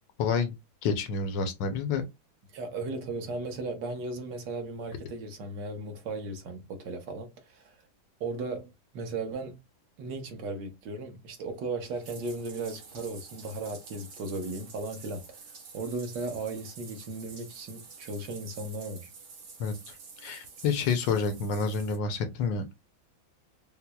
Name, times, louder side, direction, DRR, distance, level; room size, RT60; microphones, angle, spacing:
voice 1, 0.2-0.5 0.8-2.0 19.6-20.0 20.2-22.6, left 5 dB, 70° left, 1.3 m, -28 dB
voice 2, 2.5-7.8 8.2-9.6 10.0-15.2 15.7-19.1, right 3 dB, 65° right, 1.4 m, -36 dB
Bathtub (filling or washing), 11.9-22.0, right 5 dB, 85° right, 2.3 m, -49 dB
5.7 x 2.0 x 2.2 m
omnidirectional pair, 2.1 m